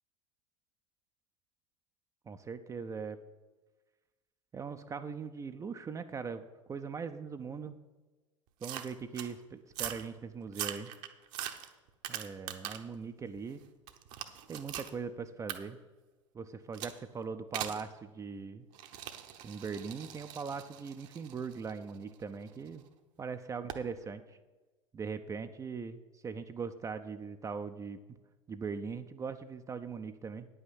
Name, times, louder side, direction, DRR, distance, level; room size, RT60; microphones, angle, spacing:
voice 1, 2.3-3.2 4.5-7.8 8.6-10.9 12.1-13.6 14.5-15.8 16.3-18.7 19.4-22.8 23.2-24.4 24.9-28.0 28.5-30.5, right 5 dB, 20° right, 8 dB, 0.5 m, -40 dB
sound 1, 8.6-9.3 9.7-10.1 10.5-12.9 13.4-14.9 15.5-15.6 16.7-17.0 17.5-17.8 18.7-22.7 23.7-23.9, right 11 dB, 50° right, 1.0 m, -42 dB
9.6 x 5.7 x 7.9 m, 1.2 s
figure-of-eight pair, 80°, 16 cm